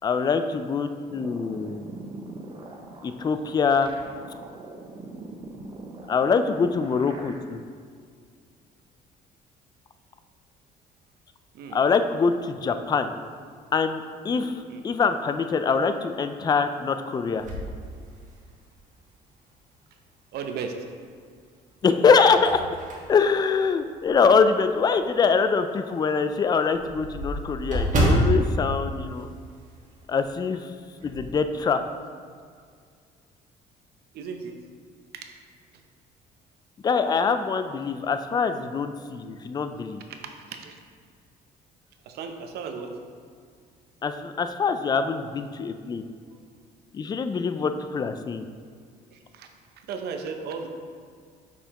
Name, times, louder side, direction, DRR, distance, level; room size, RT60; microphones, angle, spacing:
voice 1, 0.0-1.8 3.0-3.9 6.1-7.6 11.7-13.1 13.7-17.5 21.8-22.6 23.1-29.3 30.1-30.7 31.0-31.8 36.8-40.0 44.0-46.0 46.9-48.5, left 5 dB, 25° left, 9 dB, 0.3 m, -24 dB
sound 1, 1.1-7.4, right 2 dB, 30° right, 0.7 m, -42 dB
sound 2, 17.4-18.7 19.3-19.4 20.8-21.3 21.8-24.5 24.9-25.0 25.4-25.5 25.8-25.9 26.1-29.9 30.2-30.4 30.7-31.3, right 1 dB, 50° right, 1.4 m, -28 dB
voice 2, 20.3-20.8 34.1-34.6 35.1-35.3 40.1-40.8 42.0-42.9 47.0-47.1 49.1-49.5 49.9-50.7, right 6 dB, 70° right, 5 dB, 0.7 m, -36 dB
6.4 x 5.6 x 2.9 m, 2.1 s
cardioid pair, 110°, 17 cm